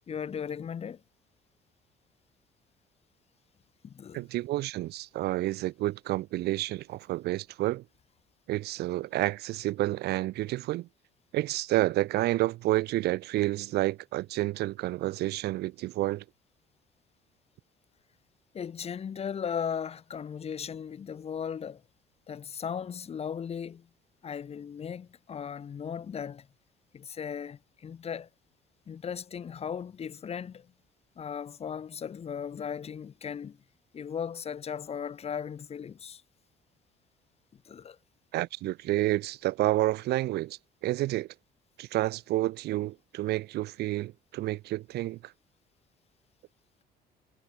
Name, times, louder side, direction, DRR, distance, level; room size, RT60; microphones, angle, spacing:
voice 1, 0.1-1.0 3.8-4.2 18.5-21.8 22.3-23.9 24.2-26.5 26.9-28.3 28.9-30.7 31.2-33.6 33.9-36.2 37.5-38.0, left 7 dB, 40° left, 1.2 m, -37 dB
voice 2, 4.1-7.8 8.5-10.9 11.3-16.2 38.3-41.3 41.8-45.3, right 17 dB, 75° right, 0.9 m, -29 dB
cardioid pair, 110°, 17 cm